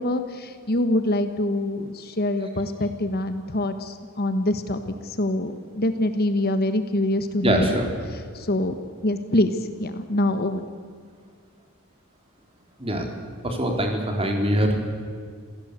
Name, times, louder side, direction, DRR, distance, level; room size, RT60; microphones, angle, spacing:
voice 1, 0.0-7.8 8.3-8.8 9.0-10.6, left 1 dB, 45° left, 9 dB, 1.3 m, -25 dB
voice 2, 7.4-7.9 12.8-13.1 13.4-14.9, right 1 dB, 25° right, 3 dB, 3.8 m, -23 dB
27.5 x 17.0 x 8.2 m, 2.1 s
head